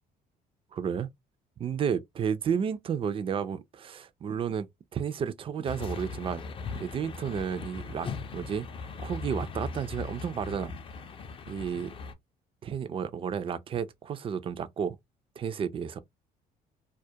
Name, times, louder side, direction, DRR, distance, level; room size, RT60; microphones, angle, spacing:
voice 1, 0.7-1.1 1.6-4.7 4.9-6.4 6.7-8.7 9.0-10.7 11.5-11.9 12.6-15.0 15.4-16.0, right 7 dB, 35° right, 0.3 m, -32 dB
sound 1, 5.6-12.1, left 4 dB, 30° left, 0.4 m, -39 dB
2.3 x 2.1 x 2.7 m
cardioid pair, 110°, 17 cm